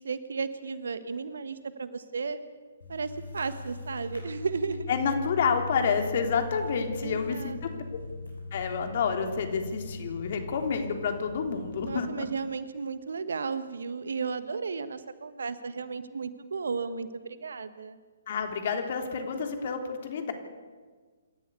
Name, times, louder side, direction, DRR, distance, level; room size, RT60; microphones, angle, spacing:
voice 1, 0.0-2.4 2.9-4.9 7.0-7.8 11.8-18.0, right 5 dB, 65° right, 12 dB, 1.6 m, -34 dB
sound 1, 2.8-12.0, left 2 dB, 70° left, 6.9 m, -40 dB
voice 2, 4.9-8.0 8.5-12.3 18.3-20.3, left 6 dB, 50° left, 5 dB, 3.3 m, -29 dB
27.0 x 13.5 x 8.4 m, 1.5 s
figure-of-eight pair, 130°, 0 cm